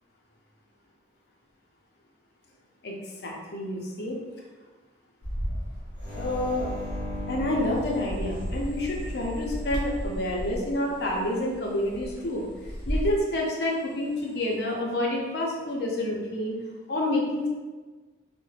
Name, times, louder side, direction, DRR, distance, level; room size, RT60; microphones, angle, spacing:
voice 1, 3.2-4.2 6.1-6.7 7.3-12.4 12.9-16.6 16.9-17.5, left 1 dB, 55° left, -2 dB, 0.5 m, -28 dB
Bird, 5.2-13.2, equal, 65° right, 0.7 m, -34 dB
sound 1, 6.0-10.6 13.9-14.4, left 2 dB, 25° left, 0.8 m, -41 dB
2.3 x 2.1 x 3.1 m, 1.3 s
head